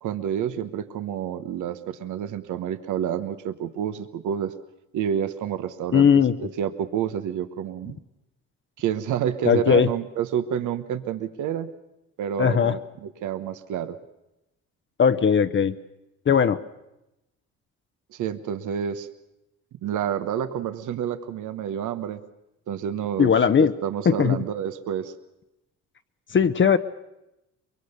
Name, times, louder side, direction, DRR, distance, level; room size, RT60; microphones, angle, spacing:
voice 1, 0.0-4.5 4.9-6.1 6.4-8.0 8.8-11.7 12.2-14.0 18.1-19.1 19.8-22.2 22.7-23.3 23.6-25.1, right 9 dB, 80° right, 11 dB, 1.1 m, -29 dB
voice 2, 5.9-6.3 9.4-9.9 12.4-12.8 15.0-15.7 16.3-16.6 23.2-23.7 24.1-24.4 26.3-26.8, left 7 dB, 40° left, 10 dB, 0.8 m, -18 dB
23.0 x 23.0 x 6.8 m, 0.90 s
cardioid pair, 90°, 30 cm